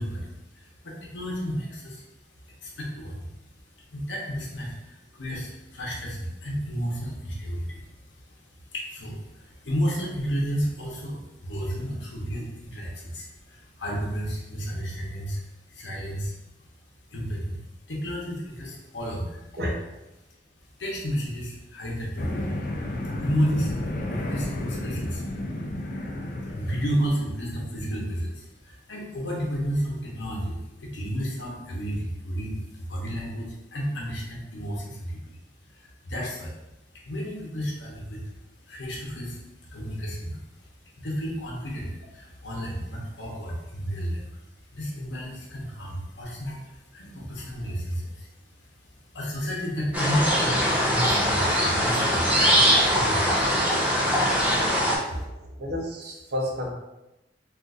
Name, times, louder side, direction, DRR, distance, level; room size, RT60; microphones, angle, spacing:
voice 1, 0.0-2.1 2.5-3.3 3.7-16.4 17.1-19.4 20.8-22.7 23.2-25.3 25.9-35.4 35.7-36.5 36.9-38.3 38.7-44.4 44.7-48.3 48.6-48.7 49.1-55.2, equal, 85° left, -2 dB, 0.8 m, -32 dB
sound 1, 22.2-27.2, left 1 dB, 50° left, 0.4 m, -32 dB
sound 2, 49.9-55.0, equal, 10° right, 0.5 m, -22 dB
voice 2, 55.1-56.7, left 1 dB, 60° right, 0 dB, 0.7 m, -31 dB
3.9 x 2.5 x 2.4 m, 0.95 s
head